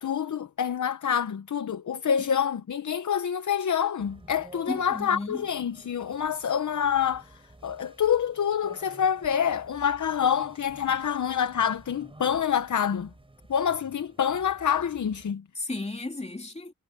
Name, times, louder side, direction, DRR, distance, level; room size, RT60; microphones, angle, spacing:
voice 1, 0.0-13.1 13.5-15.4, left 8 dB, 65° left, 0.8 m, -27 dB
sound 1, 4.0-15.3, right 2 dB, 15° right, 3.9 m, -52 dB
voice 2, 4.7-5.5 15.5-16.7, left 2 dB, 20° left, 3.1 m, -34 dB
wide cardioid pair, 175°, 33 cm